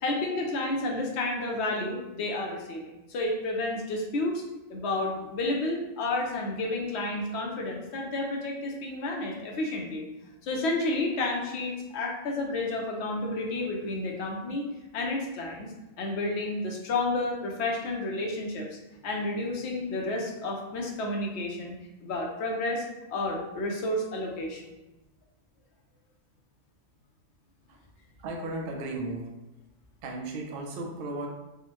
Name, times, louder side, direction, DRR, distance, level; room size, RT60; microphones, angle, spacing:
voice 1, 0.0-4.4 4.7-10.0 10.4-14.7 14.9-15.7 16.0-18.7 19.0-21.7 22.0-24.7, left 2 dB, 65° left, 0 dB, 0.7 m, -31 dB
voice 2, 28.2-29.3 30.0-31.3, right 2 dB, 65° right, 1 dB, 0.6 m, -35 dB
3.5 x 2.1 x 2.9 m, 1.0 s
omnidirectional pair, 1.5 m